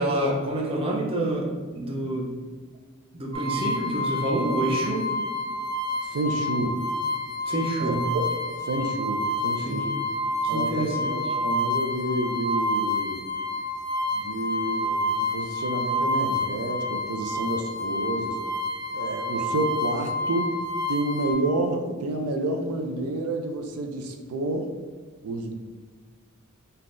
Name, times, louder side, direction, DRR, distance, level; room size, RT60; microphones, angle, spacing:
voice 1, 0.0-2.3 3.1-5.1 7.5-8.0 9.7-9.8 10.5-11.2, right 1 dB, 25° right, -1 dB, 0.5 m, -27 dB
sound 1, 3.3-21.3, left 1 dB, 20° left, 0.8 m, -28 dB
voice 2, 6.0-6.8 7.8-8.3 8.6-9.9 10.5-13.2 14.1-18.4 18.9-20.6 20.9-24.7 25.2-25.5, right 2 dB, 90° right, 4 dB, 0.4 m, -29 dB
3.6 x 2.8 x 2.5 m, 1.5 s
head